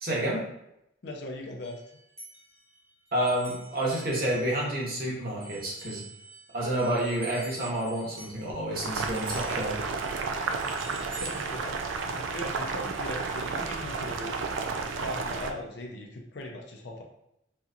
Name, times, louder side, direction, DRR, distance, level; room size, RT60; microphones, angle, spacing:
voice 1, 0.0-0.4 3.1-6.0 6.5-9.8, right 1 dB, 45° right, -4 dB, 1.0 m, -29 dB
voice 2, 1.0-1.8 11.2-14.3 15.0-17.0, left 1 dB, 60° left, 1 dB, 0.5 m, -39 dB
sound 1, 1.6-5.1 5.4-12.3, right 3 dB, 15° right, 0.8 m, -47 dB
Boiling, 8.7-15.5, right 4 dB, 80° right, 0.4 m, -32 dB
4.0 x 2.9 x 2.4 m, 0.82 s
head